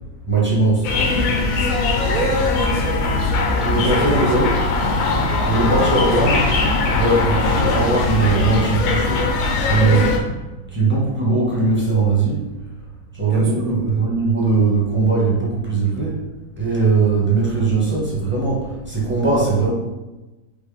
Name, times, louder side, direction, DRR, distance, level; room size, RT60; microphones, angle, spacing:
voice 1, 0.3-0.9 3.6-4.5 5.4-6.4 7.0-9.2 9.6-10.2 10.7-12.5 13.2-16.2 16.6-19.7, right 3 dB, 10° right, -6 dB, 1.2 m, -19 dB
sound 1, 0.8-10.2, left 3 dB, 65° left, 1.0 m, -20 dB
sound 2, 2.0-8.6, left 2 dB, 25° right, 0.9 m, -33 dB
voice 2, 2.1-3.3 3.9-4.4 5.4-6.5 13.2-14.2, right 2 dB, 75° right, 3 dB, 1.1 m, -29 dB
5.2 x 2.9 x 3.4 m, 1.1 s
omnidirectional pair, 1.6 m